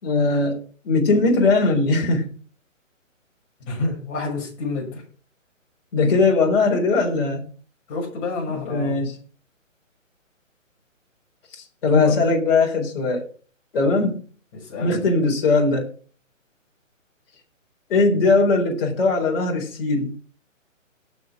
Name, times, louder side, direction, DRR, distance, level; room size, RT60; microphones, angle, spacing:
voice 1, 0.0-2.3 5.9-7.5 8.5-9.2 11.5-13.2 13.7-14.2 14.8-15.9 17.9-20.1, left 3 dB, 45° left, 0 dB, 4.1 m, -20 dB
voice 2, 3.7-5.0 7.9-9.0 11.8-12.2 14.5-15.0, left 3 dB, 25° left, -1 dB, 6.6 m, -28 dB
18.5 x 6.3 x 4.9 m, 0.42 s
hypercardioid pair, 150°, 39 cm